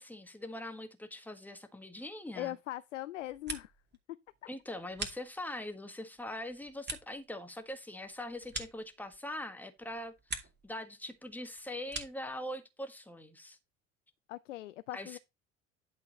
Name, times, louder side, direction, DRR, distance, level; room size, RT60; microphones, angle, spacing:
voice 1, 0.0-2.5 4.5-13.6 14.9-15.2, left 1 dB, 5° left, 1.5 m, -42 dB
voice 2, 2.4-3.7 14.3-15.2, left 15 dB, 80° left, 0.5 m, -40 dB
sound 1, 3.1-4.0 4.3-5.7 6.2-9.4 9.8-10.7 11.0-12.3, right 4 dB, 30° right, 2.5 m, -44 dB
11.0 x 4.5 x 4.3 m
figure-of-eight pair, 60°, 37 cm